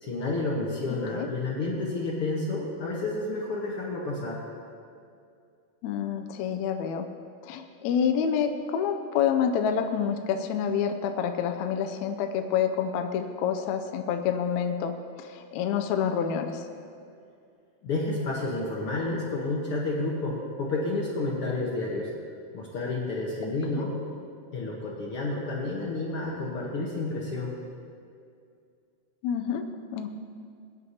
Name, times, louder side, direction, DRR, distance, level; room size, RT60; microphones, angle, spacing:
voice 1, 0.0-4.4 17.8-22.1 22.5-23.9 24.5-27.5, left 2 dB, 55° left, -3 dB, 1.7 m, -30 dB
voice 2, 5.8-7.0 7.4-14.9 15.2-16.7 23.8-23.9 29.2-29.6 29.9-30.1, left 7 dB, 80° left, 6 dB, 1.7 m, -28 dB
21.5 x 9.7 x 2.8 m, 2.4 s
omnidirectional pair, 3.9 m